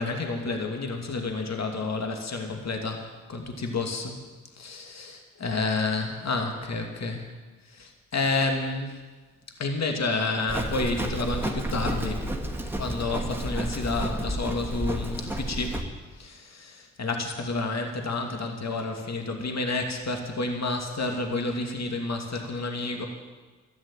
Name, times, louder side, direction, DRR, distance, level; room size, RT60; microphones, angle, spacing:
voice 1, 0.0-4.2 4.6-7.3 7.6-9.0 9.6-12.3 12.8-15.8 16.1-23.0, left 3 dB, 45° left, 3 dB, 2.7 m, -30 dB
Livestock farm animals working animals, 10.5-15.8, right 1 dB, 5° right, 2.3 m, -31 dB
13.0 x 10.5 x 9.2 m, 1.3 s
hypercardioid pair, 45°, 39 cm